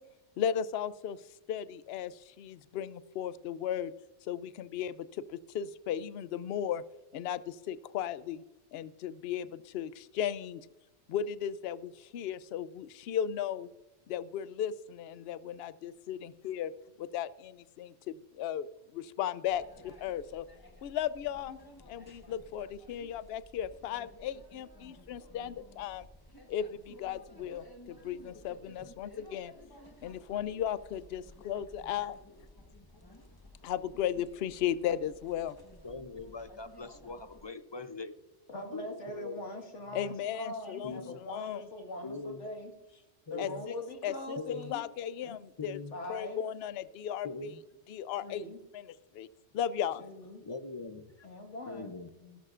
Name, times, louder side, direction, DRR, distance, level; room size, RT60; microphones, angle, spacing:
voice 1, 0.4-1.2 1.5-3.9 4.2-6.8 7.1-8.4 8.7-10.7 11.1-13.7 14.1-16.7 17.0-20.5 20.8-21.6 21.9-26.1 26.5-29.5 30.0-32.2 33.6-35.6 39.9-41.6 43.4-43.7 44.0-44.4 44.7-45.8 46.1-47.5 47.9-48.5 48.7-49.3 49.5-50.0, left 9 dB, 65° left, 16 dB, 0.8 m, -36 dB
sound 1, 19.4-37.4, left 1 dB, 20° left, 1.2 m, -55 dB
voice 2, 35.8-38.1 38.7-39.4 40.8-41.2 42.0-42.4 43.3-43.6 44.4-44.7 45.6-46.0 47.2-47.6 50.4-51.3 51.6-52.1, left 3 dB, 35° left, 11 dB, 0.4 m, -41 dB
voice 3, 38.5-42.7 43.3-44.8 45.2-45.4 45.9-46.4 48.2-48.6 50.0-50.4 51.2-52.0 52.2-52.4, left 1 dB, 80° left, 3 dB, 2.1 m, -42 dB
17.0 x 13.0 x 2.5 m, 1.1 s
omnidirectional pair, 1.2 m